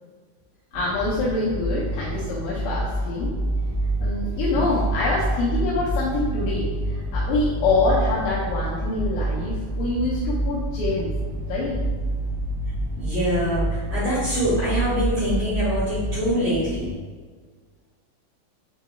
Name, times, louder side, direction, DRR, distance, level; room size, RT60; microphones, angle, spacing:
voice 1, 0.7-3.4 4.0-11.1 11.5-11.8, left 3 dB, 85° left, -7 dB, 2.6 m, -25 dB
sound 1, 0.7-16.9, right 1 dB, 85° right, 3.5 m, -27 dB
voice 2, 13.0-16.8, equal, 65° right, -12 dB, 2.2 m, -24 dB
7.6 x 2.9 x 2.3 m, 1.5 s
omnidirectional pair, 5.9 m